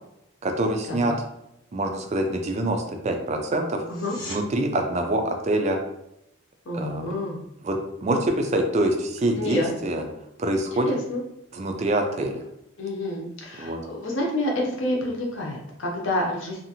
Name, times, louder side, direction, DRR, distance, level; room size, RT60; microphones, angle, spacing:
voice 1, 0.4-1.1 1.7-3.8 4.3-5.8 6.7-7.1 7.6-10.0 10.4-10.9 11.5-12.4 13.6-13.8, right 1 dB, 30° right, 4 dB, 0.3 m, -25 dB
sound 1, 3.8-4.4 15.8-15.9, left 2 dB, 20° left, 0.8 m, -39 dB
voice 2, 6.7-7.4 9.4-9.7 10.8-11.2 12.8-16.6, left 1 dB, 60° left, -1 dB, 0.7 m, -28 dB
2.7 x 2.4 x 2.7 m, 0.82 s
head